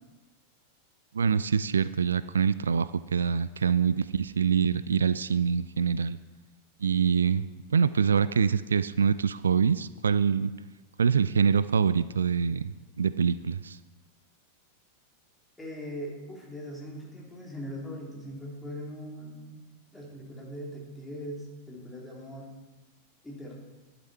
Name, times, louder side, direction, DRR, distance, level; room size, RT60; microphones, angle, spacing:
voice 1, 1.1-6.2 6.8-10.5 11.0-12.7 13.0-13.8, right 6 dB, 70° right, 15 dB, 0.3 m, -25 dB
voice 2, 15.6-19.6 19.9-22.5 23.2-23.6, equal, 10° left, -3 dB, 3.3 m, -40 dB
11.0 x 11.0 x 4.3 m, 1.2 s
figure-of-eight pair, 90°, 0 cm